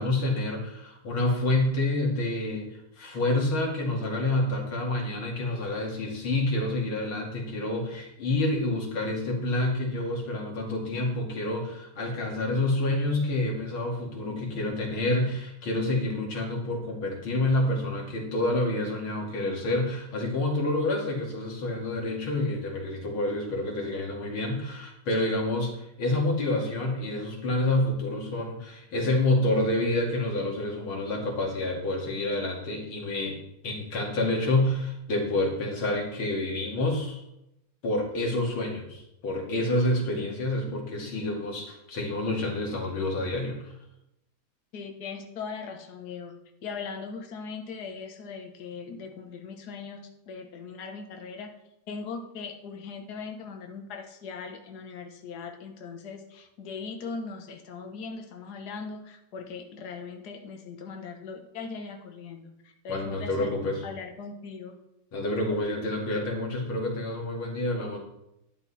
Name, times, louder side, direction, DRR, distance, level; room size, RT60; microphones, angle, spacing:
voice 1, 0.0-33.4 33.6-37.2 37.8-43.7 62.9-63.8 65.1-68.0, left 2 dB, 80° left, -1 dB, 3.2 m, -28 dB
voice 2, 44.7-46.4 46.6-51.5 51.9-63.6 63.8-64.8, left 5 dB, 55° left, 4 dB, 1.7 m, -39 dB
12.5 x 9.7 x 4.2 m, 0.85 s
omnidirectional pair, 2.2 m